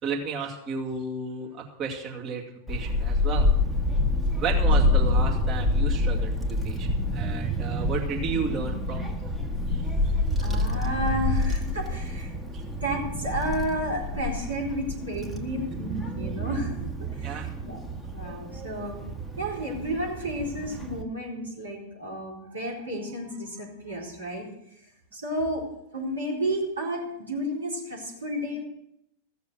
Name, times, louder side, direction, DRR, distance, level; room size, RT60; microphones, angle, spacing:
voice 1, 0.0-3.5 4.3-9.1 9.7-10.1 11.2-11.5 12.5-12.6 17.2-17.5 25.6-25.7, right 5 dB, 30° right, -1 dB, 2.3 m, -33 dB
Child speech kid speaking / Wind, 2.7-21.0, left 2 dB, ahead, 1.4 m, -27 dB
voice 2, 10.4-12.5 12.8-16.8 17.1-17.8 18.1-19.0 19.4-24.5 25.1-25.6 25.9-28.6, equal, 80° right, -3 dB, 4.1 m, -32 dB
15.0 x 6.8 x 8.0 m, 0.81 s
figure-of-eight pair, 90°, 0 cm